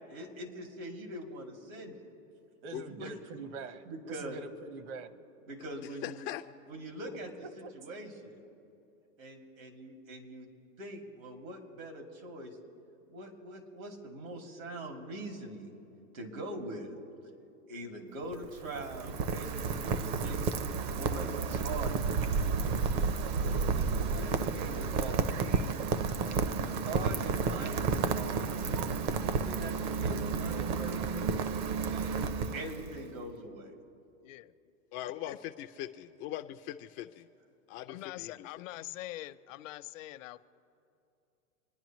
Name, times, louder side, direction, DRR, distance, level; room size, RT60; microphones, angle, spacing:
voice 1, 0.1-2.0 2.7-3.1 3.8-4.4 5.5-6.2 6.7-7.3 7.6-8.4 9.2-10.5 10.8-12.6 13.1-15.7 16.1-16.9 17.7-20.5 20.9-22.2 23.4-25.4 26.5-28.4 29.2-31.4 31.9-32.2 32.5-33.7, right 1 dB, 75° right, 1 dB, 2.9 m, -43 dB
voice 2, 2.6-5.3 7.1-7.7, right 4 dB, 55° right, 10 dB, 1.3 m, -45 dB
voice 3, 6.0-6.4 34.9-37.3 37.7-38.5, left 13 dB, 30° left, 9 dB, 0.4 m, -40 dB
Rain, 18.2-33.1, right 5 dB, 40° right, 0.7 m, -31 dB
voice 4, 34.2-34.5 35.3-35.4 37.9-40.4, left 15 dB, 65° left, 12 dB, 0.7 m, -43 dB
26.0 x 10.0 x 3.1 m, 2.7 s
hypercardioid pair, 120°, 41 cm